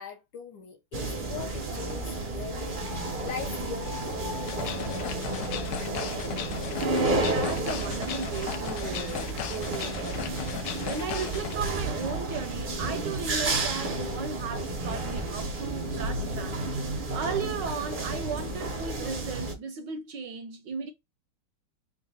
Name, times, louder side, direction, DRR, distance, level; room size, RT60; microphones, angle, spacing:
voice 1, 0.0-2.9 3.2-4.5, left 5 dB, 70° left, 1.7 m, -40 dB
sound 1, 0.9-19.5, right 2 dB, 55° right, 0.5 m, -31 dB
sound 2, 4.4-11.5, left 10 dB, 90° left, 0.8 m, -37 dB
voice 2, 7.2-10.4 10.8-20.9, right 5 dB, 75° right, 1.1 m, -36 dB
3.9 x 2.4 x 3.9 m
omnidirectional pair, 2.2 m